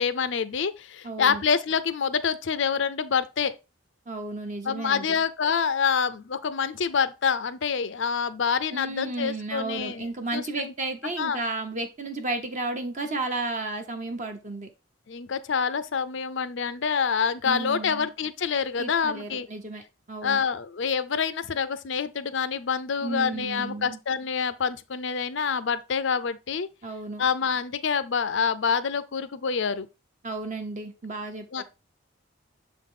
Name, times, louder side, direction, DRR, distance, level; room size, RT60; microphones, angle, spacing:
voice 1, 0.0-3.5 4.7-10.7 11.2-11.4 15.1-19.5 20.2-26.7 27.2-29.9 31.5-31.6, left 6 dB, 65° left, 0.5 m, -27 dB
voice 2, 1.0-1.4 4.1-5.2 8.7-14.7 17.4-18.1 18.8-19.8 20.1-20.4 23.0-24.0 26.8-27.2 30.2-31.6, right 2 dB, 35° right, 0.9 m, -33 dB
6.9 x 3.8 x 3.6 m
head